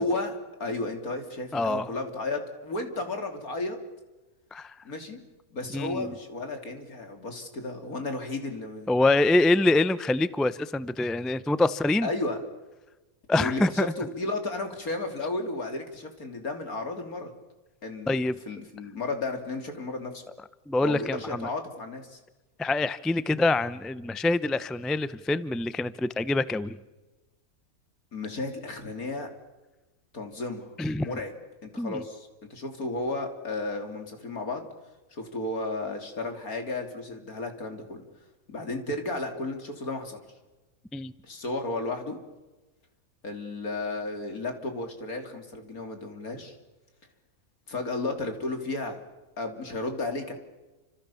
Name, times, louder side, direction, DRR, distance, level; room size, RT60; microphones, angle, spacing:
voice 1, 0.0-3.8 4.8-5.2 5.5-8.9 12.0-12.4 13.3-17.3 17.8-18.2 18.5-20.2 20.8-22.2 28.1-29.3 30.1-30.7 31.0-31.4 31.6-34.7 35.1-38.0 38.5-40.2 41.2-42.2 43.2-46.6 47.7-49.0 49.4-50.3, left 2 dB, 80° left, 5 dB, 3.6 m, -33 dB
voice 2, 1.5-1.9 4.5-4.8 5.7-6.1 8.9-12.1 13.3-13.9 18.1-18.4 20.7-21.5 22.6-26.8 30.8-31.2 31.8-32.0 40.9-41.1, left 2 dB, ahead, 15 dB, 0.4 m, -25 dB
29.0 x 26.5 x 7.1 m, 1.1 s
omnidirectional pair, 1.5 m